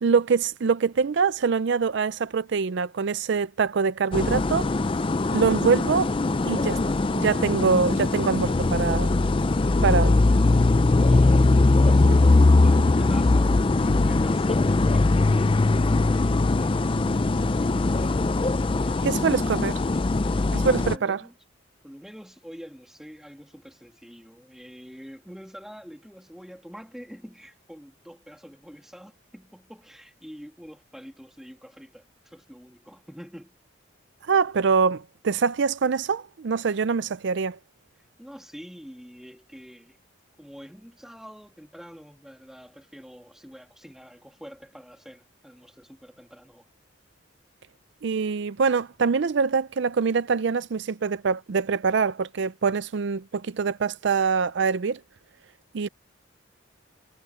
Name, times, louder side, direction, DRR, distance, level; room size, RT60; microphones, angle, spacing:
voice 1, 0.0-4.7 5.3-6.1 6.4-9.1 9.8-10.2 12.0-12.1 19.0-19.8 20.5-21.2 34.2-37.6 48.0-55.0 55.7-55.9, right 5 dB, 60° right, 0.4 m, -24 dB
sound 1, 4.1-21.0, left 2 dB, 25° left, 0.4 m, -21 dB
voice 2, 11.0-19.3 20.4-21.3 21.8-33.6 38.0-40.0 40.4-46.7, equal, ahead, 2.2 m, -46 dB
head